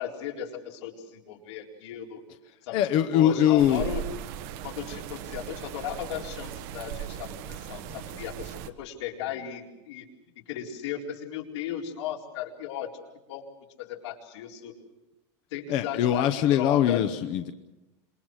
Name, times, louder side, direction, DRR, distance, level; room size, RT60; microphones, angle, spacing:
voice 1, 0.0-2.2 2.6-2.8 3.1-4.0 4.6-10.1 10.5-13.0 13.3-13.4 13.8-14.7 15.5-17.1, left 10 dB, 75° left, 0 dB, 4.3 m, -36 dB
voice 2, 2.7-3.9 15.7-17.5, left 10 dB, 35° left, 8 dB, 0.8 m, -22 dB
sound 1, 3.6-8.7, right 10 dB, 40° right, 1.2 m, -38 dB
27.0 x 22.0 x 6.4 m, 0.98 s
supercardioid pair, 180°, 15 cm